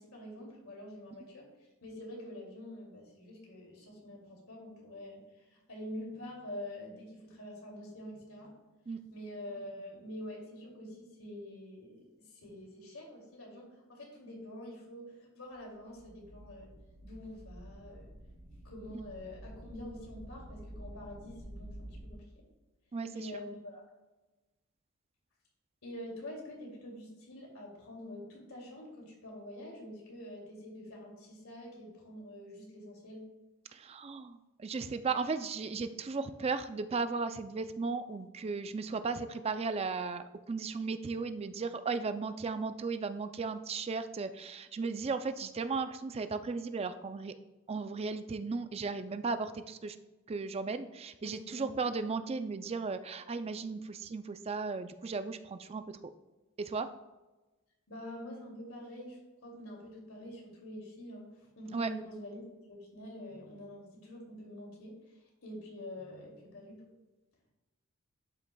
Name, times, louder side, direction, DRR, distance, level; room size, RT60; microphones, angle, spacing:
voice 1, 0.0-1.5 1.8-8.5 9.1-16.7 17.0-18.1 18.6-22.3 23.1-23.8 25.8-33.2 51.2-51.7 57.9-62.4 62.7-66.8, left 1 dB, 75° left, -2 dB, 2.6 m, -46 dB
sound 1, 15.5-15.6 15.8-22.1, equal, 55° right, 2.4 m, -49 dB
voice 2, 22.9-23.3 33.7-47.3 47.7-50.0 50.3-56.0 56.6-56.9 61.7-61.9, right 4 dB, 30° right, 10 dB, 0.4 m, -36 dB
11.5 x 5.8 x 2.3 m, 1.1 s
head